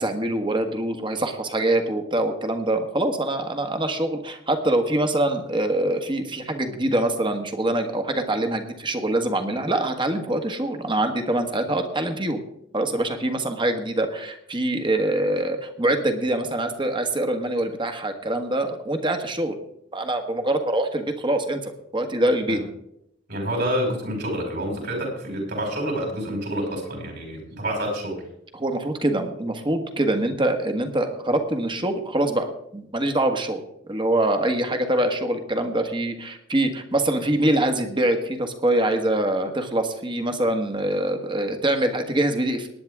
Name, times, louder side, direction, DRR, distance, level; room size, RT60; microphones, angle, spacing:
voice 1, 0.0-12.4 12.7-19.6 19.9-22.6 28.5-33.6 33.9-42.7, right 1 dB, 25° right, 6 dB, 1.5 m, -24 dB
voice 2, 23.3-28.2, equal, 60° right, 1 dB, 5.5 m, -28 dB
19.0 x 9.9 x 3.6 m, 0.76 s
head